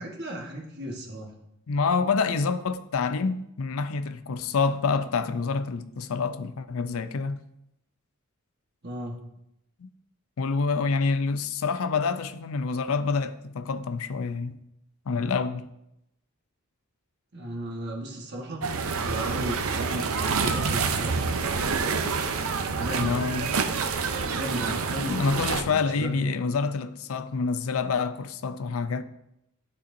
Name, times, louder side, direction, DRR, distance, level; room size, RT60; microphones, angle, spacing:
voice 1, 0.0-1.3 8.8-9.1 17.3-18.7 19.0-21.2 22.8-23.2 24.3-26.3, equal, 50° right, 1.2 m, -35 dB
voice 2, 1.7-7.4 9.8-9.9 10.4-14.6 15.1-15.7 23.0-23.5 25.1-29.0, left 4 dB, 70° left, 0.4 m, -27 dB
sound 1, 18.6-25.6, right 5 dB, 70° right, 0.6 m, -27 dB
11.0 x 4.3 x 2.6 m
head